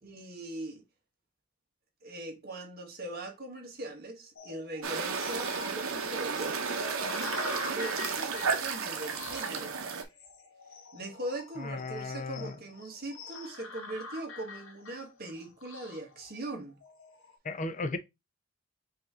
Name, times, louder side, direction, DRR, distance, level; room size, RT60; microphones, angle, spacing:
voice 1, 0.0-0.8 2.0-6.6 7.7-9.8 10.9-16.7, right 1 dB, 45° right, 1.3 m, -40 dB
sound 1, 4.4-17.4, left 4 dB, 70° left, 1.0 m, -45 dB
sound 2, 4.8-10.0, right 5 dB, 75° right, 0.8 m, -33 dB
voice 2, 11.6-12.5 17.4-18.0, left 3 dB, 35° left, 0.6 m, -35 dB
5.3 x 2.7 x 3.6 m
head